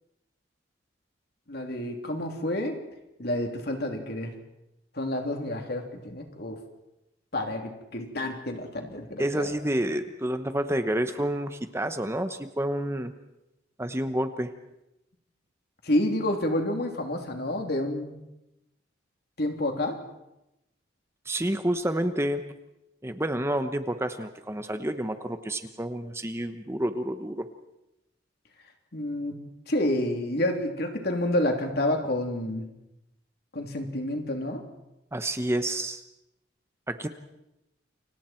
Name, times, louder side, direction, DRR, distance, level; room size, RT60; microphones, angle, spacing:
voice 1, 1.5-2.8 3.2-4.3 4.9-6.6 7.3-9.5 15.8-18.1 19.4-20.0 28.9-29.4 29.7-32.7 33.5-34.6, left 1 dB, 55° left, 3 dB, 3.3 m, -29 dB
voice 2, 9.2-13.1 13.8-14.5 21.3-22.4 23.0-27.5 35.1-36.0 36.9-37.1, right 1 dB, 15° right, 9 dB, 0.9 m, -29 dB
29.5 x 25.5 x 4.5 m, 0.90 s
head